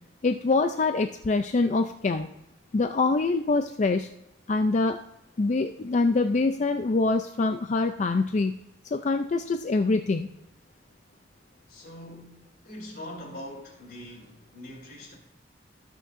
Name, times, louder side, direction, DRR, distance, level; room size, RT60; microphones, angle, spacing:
voice 1, 0.2-2.3 2.7-4.1 4.5-5.0 5.4-8.6 8.9-10.3, left 3 dB, 40° left, 0.4 m, -24 dB
voice 2, 11.7-15.1, left 1 dB, 55° left, 3.4 m, -43 dB
19.0 x 6.4 x 2.6 m
head